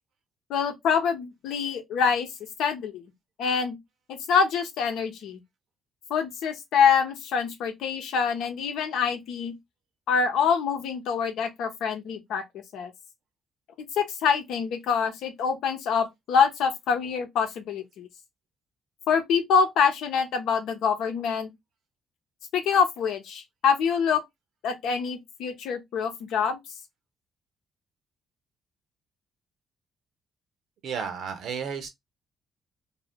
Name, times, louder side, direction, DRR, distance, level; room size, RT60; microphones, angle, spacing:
voice 1, 0.5-2.3 2.6-3.1 3.4-3.8 4.1-5.4 6.1-9.5 10.1-12.4 12.7-12.9 13.8-18.1 19.1-21.5 22.5-24.2 24.6-26.6, left 6 dB, 80° left, 0.8 m, -25 dB
voice 2, 30.8-31.9, right 6 dB, 70° right, 0.8 m, -32 dB
2.7 x 2.0 x 3.4 m
cardioid pair, 90°, 0 cm